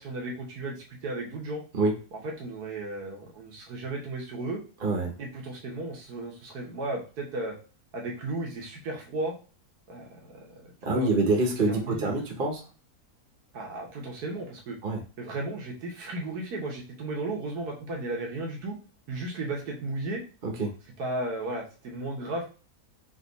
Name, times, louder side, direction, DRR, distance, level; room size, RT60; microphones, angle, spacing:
voice 1, 0.0-1.6 2.1-4.6 5.2-7.6 7.9-9.3 9.9-11.2 11.7-12.2 13.5-14.8 15.2-18.8 19.1-20.2 21.0-22.5, right 2 dB, 85° right, -1 dB, 1.6 m, -35 dB
voice 2, 4.8-5.1 10.8-12.6 14.8-15.0 20.4-20.7, right 2 dB, 40° right, 1 dB, 1.0 m, -26 dB
4.0 x 2.8 x 4.0 m, 0.36 s
omnidirectional pair, 1.6 m